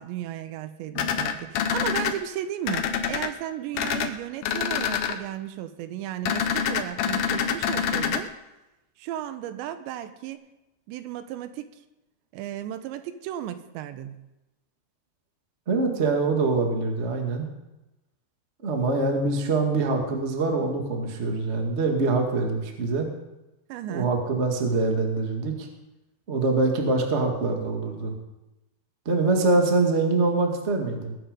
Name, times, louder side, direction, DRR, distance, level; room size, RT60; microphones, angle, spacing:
voice 1, 0.0-8.3 9.0-10.5 10.9-11.7 12.3-14.2 23.7-24.1, right 11 dB, 90° right, 10 dB, 3.2 m, -35 dB
sound 1, 1.0-2.1 2.7-3.3 3.7-4.1 4.4-5.1 6.3-8.2, left 7 dB, 70° left, 2.6 m, -26 dB
voice 2, 15.7-17.5 18.6-23.1 23.9-25.7 26.3-28.1 29.0-31.1, right 3 dB, 45° right, 2 dB, 0.8 m, -24 dB
21.0 x 8.9 x 5.3 m, 0.97 s
omnidirectional pair, 5.0 m